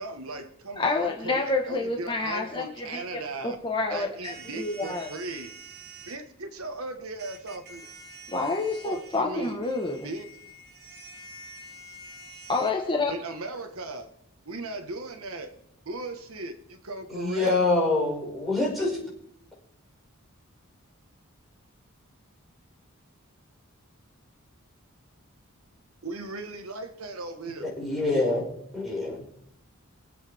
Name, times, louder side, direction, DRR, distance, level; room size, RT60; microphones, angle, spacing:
voice 1, 0.0-3.6 3.9-5.5 6.1-7.9 8.8-9.6 10.0-10.4 13.1-14.1 14.4-15.5 15.8-17.6 26.0-27.7, right 2 dB, 85° right, 7 dB, 1.4 m, -37 dB
voice 2, 0.8-3.0 3.4-5.1 8.3-10.0 12.5-13.1, left 3 dB, 20° left, 1 dB, 1.2 m, -28 dB
sound 1, 4.2-6.2 7.2-12.7, right 2 dB, 50° right, 2.2 m, -47 dB
voice 3, 17.1-19.0 27.6-29.2, left 2 dB, ahead, -5 dB, 5.2 m, -26 dB
24.0 x 8.2 x 3.5 m, 0.78 s
head